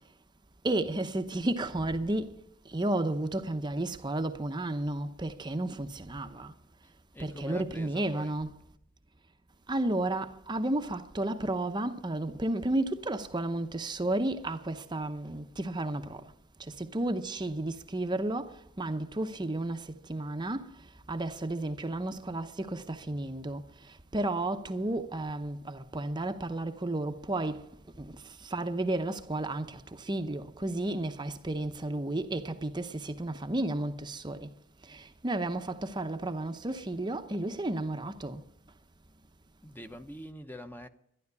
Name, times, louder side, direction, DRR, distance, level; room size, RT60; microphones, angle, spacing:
voice 1, 0.6-2.3 2.7-6.5 7.2-8.5 9.7-16.2 16.8-18.5 18.8-20.7 21.1-23.6 24.1-27.6 28.0-28.1 28.4-34.5 34.9-38.4, right 2 dB, 20° right, 0.7 m, -32 dB
voice 2, 1.8-2.1 5.8-6.2 6.8-8.5 21.0-21.1 27.7-28.2 31.3-31.5 39.6-40.9, equal, 10° left, 0.8 m, -47 dB
12.0 x 11.5 x 9.6 m
head